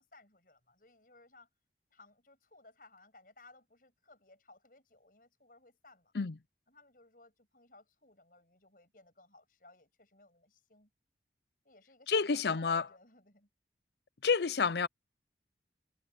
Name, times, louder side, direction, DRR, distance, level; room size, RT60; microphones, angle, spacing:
voice 1, 0.0-1.5 1.9-6.1 6.7-10.9 11.6-13.5, left 2 dB, 50° left, 7.8 m, -60 dB
voice 2, 12.1-12.9 14.2-14.9, left 5 dB, 65° left, 0.6 m, -29 dB
head